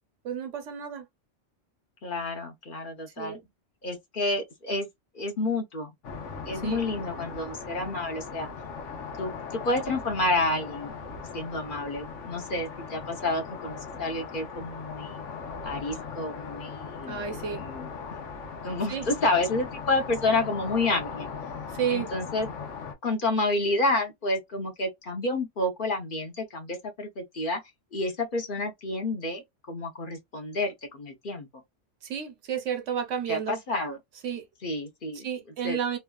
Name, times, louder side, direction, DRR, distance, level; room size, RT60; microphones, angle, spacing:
voice 1, 0.2-1.0 3.2-3.4 6.6-6.8 17.1-17.6 18.9-19.1 21.7-22.1 32.0-33.6 34.2-34.4 35.2-36.0, right 8 dB, 85° right, 1.1 m, -31 dB
voice 2, 2.0-3.4 3.8-4.9 5.1-5.9 6.4-8.5 9.2-10.9 11.3-15.2 15.6-17.3 17.6-17.9 18.6-21.3 21.9-22.5 23.0-27.6 27.9-31.5 33.3-34.0 34.6-35.3 35.6-35.8, left 2 dB, 50° left, 0.9 m, -29 dB
sound 1, 6.0-23.0, left 5 dB, 75° left, 1.2 m, -39 dB
3.1 x 2.3 x 2.2 m
omnidirectional pair, 1.3 m